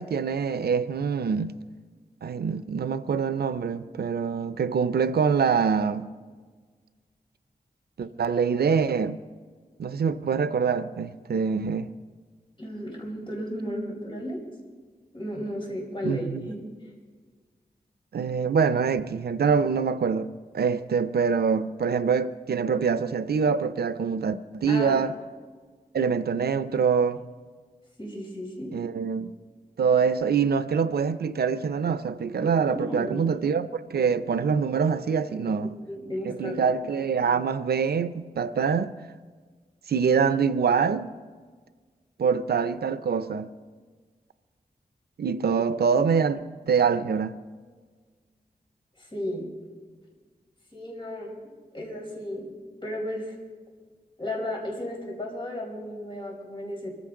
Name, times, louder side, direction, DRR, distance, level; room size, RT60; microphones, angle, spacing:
voice 1, 0.0-1.6 2.2-6.1 8.0-9.2 9.8-11.9 16.0-16.4 18.1-25.1 25.9-27.2 28.7-29.3 29.8-35.7 36.3-38.9 39.9-41.1 42.2-43.5 45.2-46.4 46.7-47.4, right 6 dB, 90° right, 0.6 m, -25 dB
voice 2, 12.6-14.4 15.1-16.6 24.7-25.0 28.0-28.7 32.7-33.2 35.3-35.5 35.9-36.7 46.0-46.1 49.0-49.5 50.7-51.4 51.7-52.5 52.8-53.4 54.2-57.0, left 1 dB, 30° left, 4.5 m, -34 dB
24.5 x 14.5 x 3.8 m
wide cardioid pair, 115°, 16 cm